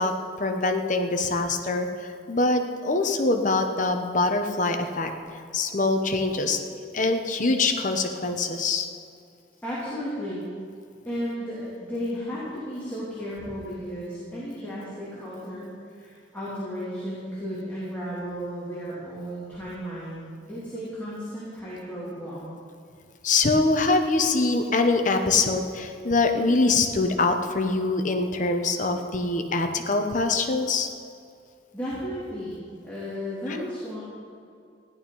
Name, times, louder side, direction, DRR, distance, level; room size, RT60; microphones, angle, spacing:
voice 1, 0.0-5.1 5.5-6.6 6.9-8.9 23.2-30.9 33.5-33.6, left 3 dB, 45° left, 5 dB, 1.1 m, -24 dB
voice 2, 9.6-10.4 11.0-22.4 31.7-34.0, equal, 10° left, -9 dB, 3.0 m, -34 dB
15.5 x 11.0 x 5.5 m, 2.4 s
head